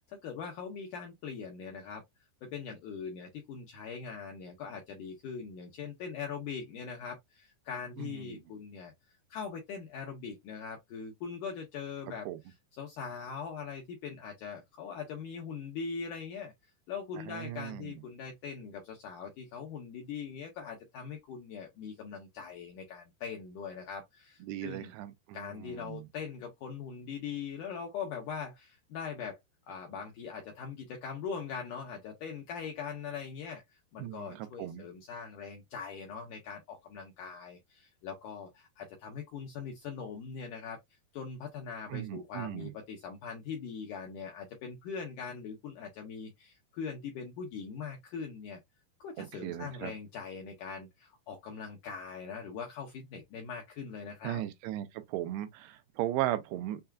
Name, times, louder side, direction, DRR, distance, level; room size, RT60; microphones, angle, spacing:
voice 1, 0.1-2.0 2.4-8.9 9.3-12.3 12.7-24.9 25.3-29.4 29.7-48.6 49.0-54.4, left 6 dB, 80° left, 1.8 m, -41 dB
voice 2, 8.0-8.4 12.3-12.4 17.3-18.0 24.4-26.0 34.0-34.9 41.9-42.7 49.2-49.9 54.2-56.8, right 13 dB, 90° right, 2.7 m, -37 dB
6.6 x 2.3 x 2.2 m
omnidirectional pair, 4.8 m